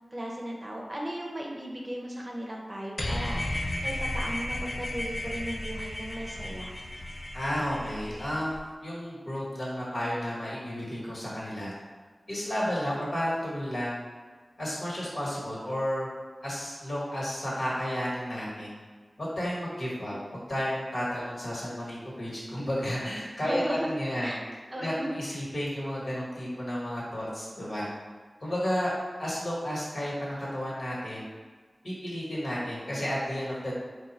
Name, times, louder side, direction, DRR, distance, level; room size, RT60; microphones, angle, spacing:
voice 1, 0.1-3.4 3.8-6.7 23.4-23.9 24.2-24.4 24.7-25.2, right 1 dB, 30° right, -2 dB, 0.7 m, -36 dB
sound 1, 3.0-8.6, left 1 dB, 35° left, 0.4 m, -34 dB
voice 2, 7.3-8.5 8.8-11.7 12.3-14.0 14.6-16.1 16.4-18.7 19.2-24.3 24.7-27.9 28.4-28.9 29.2-31.2 31.8-33.7, equal, 65° left, -7 dB, 1.4 m, -32 dB
3.8 x 2.3 x 4.1 m, 1.5 s
wide cardioid pair, 55°, 0 cm